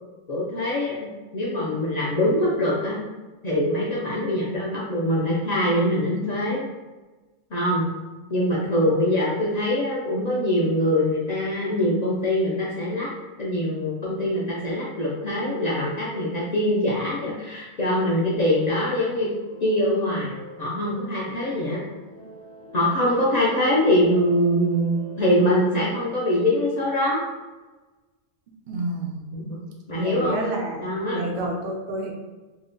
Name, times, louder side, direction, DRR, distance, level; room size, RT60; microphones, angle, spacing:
voice 1, 0.3-3.0 3.4-6.6 7.5-7.9 8.3-13.1 13.4-19.3 19.6-21.8 22.7-27.2 29.3-29.6 29.9-30.4 30.8-31.2, left 1 dB, 85° left, -6 dB, 0.3 m, -23 dB
sound 1, 18.3-25.2, equal, 60° left, 1.0 m, -45 dB
voice 2, 28.7-29.2 29.9-32.1, right 2 dB, 70° right, 0 dB, 0.4 m, -29 dB
2.8 x 2.1 x 3.8 m, 1.2 s
omnidirectional pair, 1.4 m